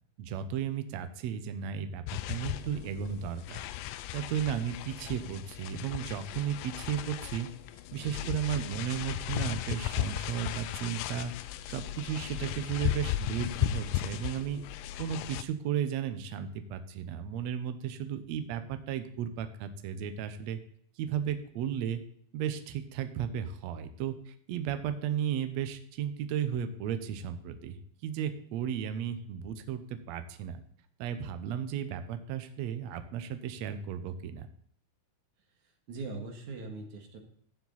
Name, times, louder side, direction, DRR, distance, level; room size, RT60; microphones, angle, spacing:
voice 1, 0.2-3.6 4.1-7.5 7.9-11.3 11.6-14.6 15.0-20.6 21.0-22.0 22.3-30.6 31.0-34.5, right 9 dB, 80° right, 9 dB, 1.6 m, -34 dB
sound 1, 2.1-15.4, left 14 dB, 85° left, 1.9 m, -36 dB
voice 2, 8.0-8.3 35.9-37.2, right 3 dB, 60° right, 3 dB, 2.7 m, -41 dB
13.5 x 7.3 x 4.0 m, 0.65 s
omnidirectional pair, 4.3 m